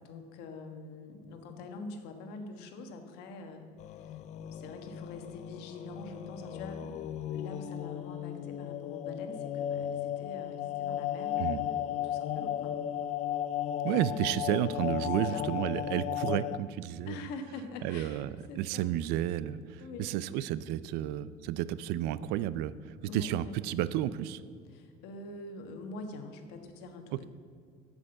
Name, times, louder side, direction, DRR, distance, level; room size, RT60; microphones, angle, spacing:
voice 1, 0.0-12.8 15.2-15.4 17.1-18.9 19.8-20.1 23.1-23.6 24.7-27.3, left 3 dB, 85° left, 6 dB, 1.4 m, -45 dB
sound 1, 3.8-16.6, left 11 dB, 45° left, 0.4 m, -35 dB
voice 2, 13.8-17.2 17.8-24.4, right 12 dB, 75° right, 17 dB, 0.4 m, -32 dB
8.2 x 7.7 x 7.7 m, 2.1 s
cardioid pair, 160°, 17 cm